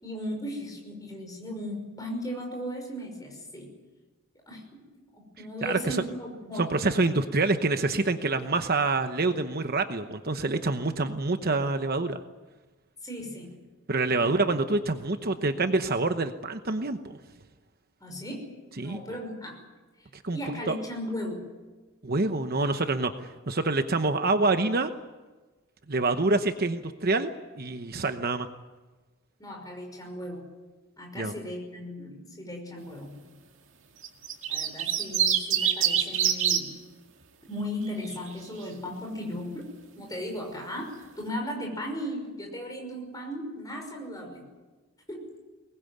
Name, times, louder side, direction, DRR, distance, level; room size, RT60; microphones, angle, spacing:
voice 1, 0.0-3.7 4.5-4.9 5.1-6.7 13.0-13.5 14.1-14.5 18.0-19.6 20.3-21.4 29.4-30.5 31.0-33.2 34.5-36.7 37.5-39.7 40.0-44.5 45.1-45.3, equal, 15° left, 2 dB, 5.8 m, -36 dB
voice 2, 5.6-6.0 6.6-12.2 13.9-17.2 18.8-19.0 20.1-20.4 20.7-20.8 22.0-24.9 25.9-27.3 27.6-28.5 31.1-31.3, right 3 dB, 45° right, 8 dB, 1.0 m, -26 dB
sound 1, 34.0-36.6 37.9-38.3, right 9 dB, 60° right, 2.2 m, -25 dB
23.0 x 20.0 x 9.4 m, 1.3 s
head